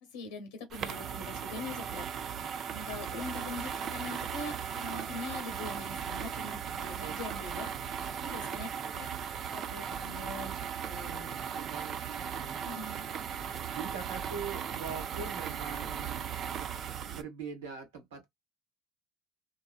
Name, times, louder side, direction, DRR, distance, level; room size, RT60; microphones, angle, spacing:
voice 1, 0.0-2.1 2.7-7.7 8.2-9.1 9.5-11.5 12.6-13.1, left 3 dB, 80° left, 0.8 m, -43 dB
sound 1, 0.7-17.2, right 8 dB, 50° right, 0.4 m, -37 dB
voice 2, 4.9-5.2 7.0-7.1 8.4-8.5 8.8-8.9 11.1-12.9 13.7-16.3 17.0-18.3, right 6 dB, 85° right, 1.3 m, -43 dB
2.9 x 2.3 x 2.2 m
hypercardioid pair, 70°, 0 cm